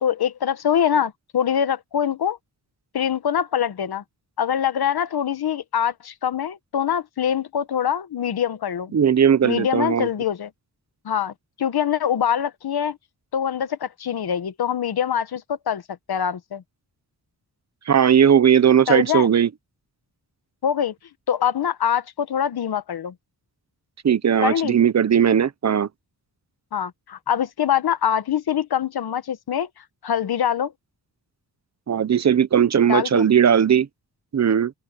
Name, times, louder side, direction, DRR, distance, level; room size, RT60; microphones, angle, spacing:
voice 1, 0.0-2.4 2.9-4.0 4.4-8.9 9.4-10.5 11.0-13.0 13.3-15.8 16.1-16.6 18.9-19.3 20.6-20.9 21.3-23.1 24.4-24.8 26.7-30.7 32.9-33.2, left 9 dB, 70° left, 1.2 m, -24 dB
voice 2, 8.9-10.1 17.9-19.5 24.0-25.9 31.9-33.9 34.3-34.7, right 8 dB, 45° right, 0.7 m, -18 dB
open air
wide cardioid pair, 135°, 39 cm